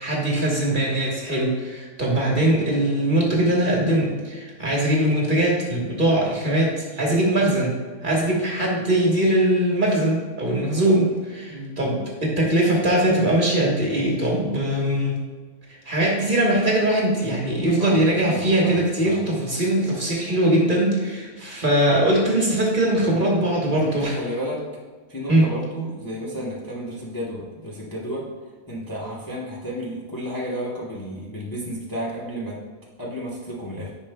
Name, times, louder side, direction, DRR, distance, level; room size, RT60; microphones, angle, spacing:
voice 1, 0.0-7.7 8.0-15.2 15.8-24.2 25.3-25.5, right 1 dB, 35° right, -3 dB, 1.4 m, -21 dB
voice 2, 17.8-19.3 23.8-24.6 25.1-28.3 28.7-32.6 33.0-33.9, equal, 15° left, -5 dB, 0.8 m, -32 dB
10.0 x 5.4 x 2.2 m, 1.5 s
omnidirectional pair, 1.6 m